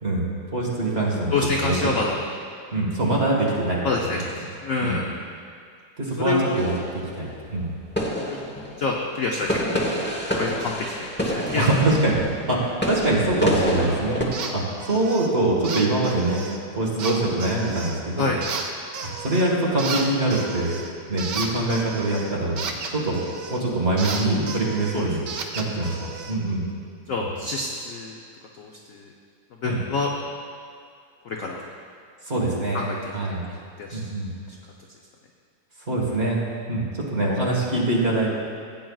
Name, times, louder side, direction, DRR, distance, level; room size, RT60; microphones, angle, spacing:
voice 1, 0.0-1.8 2.7-3.8 4.1-4.2 4.8-5.0 6.0-6.7 7.2-7.7 11.6-12.2 12.5-16.4 16.7-18.3 19.0-20.7 21.1-23.2 23.5-25.2 25.5-26.6 29.6-29.8 32.3-33.5 33.9-34.3 35.9-36.4 36.7-38.3, right 2 dB, 30° right, -3 dB, 1.6 m, -24 dB
voice 2, 1.3-2.2 3.8-4.3 4.6-5.1 6.2-6.6 8.2-8.4 8.8-9.8 10.4-11.6 13.8-14.0 18.2-18.4 24.9-25.1 27.1-28.2 28.6-29.1 29.6-30.1 31.2-31.6 32.7-33.1 33.8-34.0, left 3 dB, 65° left, -1 dB, 0.8 m, -27 dB
sound 1, 6.5-7.4 8.0-9.0 9.4-14.2, equal, 10° left, 0.5 m, -27 dB
sound 2, 14.3-14.5 14.8-15.3 15.6-16.6 17.0-18.0 18.4-19.5 19.8-23.6 24.0-26.4, right 5 dB, 65° right, 1.4 m, -33 dB
16.0 x 8.8 x 2.4 m, 2.3 s
omnidirectional pair, 2.2 m